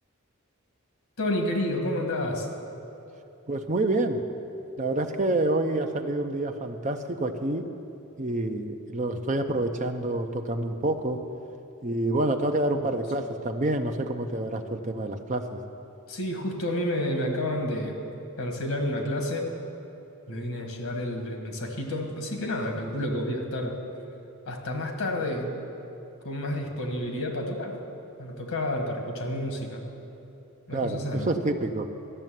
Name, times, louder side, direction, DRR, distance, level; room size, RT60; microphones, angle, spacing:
voice 1, 1.2-2.5 12.8-13.2 16.1-18.0 18.4-19.5 20.3-23.8 24.5-25.5 26.2-27.8 28.2-29.8 30.7-31.3, left 1 dB, 85° left, 3 dB, 1.7 m, -30 dB
voice 2, 3.5-4.2 4.8-7.6 8.2-11.2 11.8-15.6 30.7-31.9, right 2 dB, 35° right, 5 dB, 0.6 m, -27 dB
12.5 x 6.8 x 9.1 m, 2.9 s
head